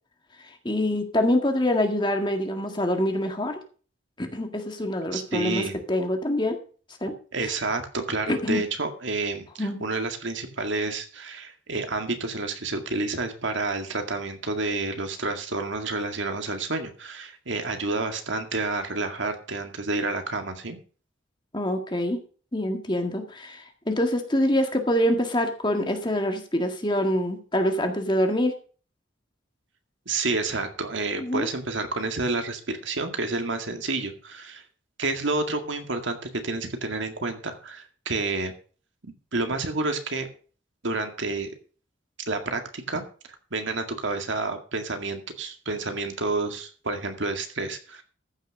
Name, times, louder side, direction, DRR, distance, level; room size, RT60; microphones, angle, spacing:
voice 1, 0.6-3.6 4.2-6.6 7.0-7.1 8.3-8.6 9.6-9.9 21.5-22.2 22.5-28.5 31.2-31.5, left 1 dB, 25° left, 5 dB, 1.8 m, -25 dB
voice 2, 5.1-5.8 7.3-20.8 30.1-34.6 35.0-36.2 36.4-38.5 39.0-40.3 40.8-41.5 42.3-43.0 43.5-48.0, right 3 dB, 70° right, 6 dB, 2.0 m, -29 dB
14.5 x 6.4 x 6.3 m, 0.40 s
head